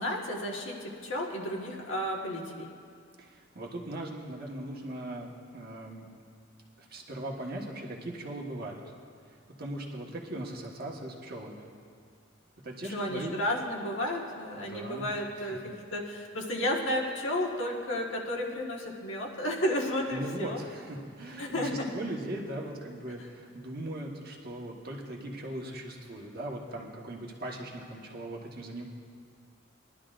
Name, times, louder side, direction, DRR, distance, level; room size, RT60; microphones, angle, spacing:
voice 1, 0.0-2.7 12.8-20.6 21.4-21.9 23.2-23.3, left 1 dB, 70° left, -1 dB, 1.6 m, -32 dB
voice 2, 3.2-6.1 6.8-8.9 9.6-11.7 12.6-13.3 14.6-15.1 20.1-28.8, right 1 dB, 50° right, -2 dB, 1.4 m, -39 dB
20.5 x 11.5 x 2.6 m, 2.2 s
head